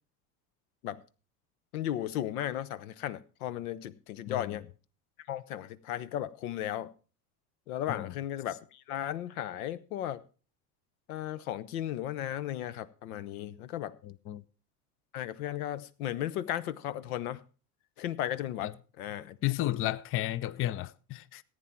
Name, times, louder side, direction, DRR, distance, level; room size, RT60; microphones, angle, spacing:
voice 1, 1.7-4.7 5.3-6.9 7.7-10.2 11.1-14.0 15.1-17.4 18.0-19.4, left 12 dB, 75° left, 0.9 m, -35 dB
voice 2, 4.3-4.6 7.9-8.1 14.0-14.4 18.6-18.7 19.4-21.4, left 14 dB, 30° left, 0.5 m, -33 dB
14.5 x 9.1 x 4.4 m
hypercardioid pair, 95°, 44 cm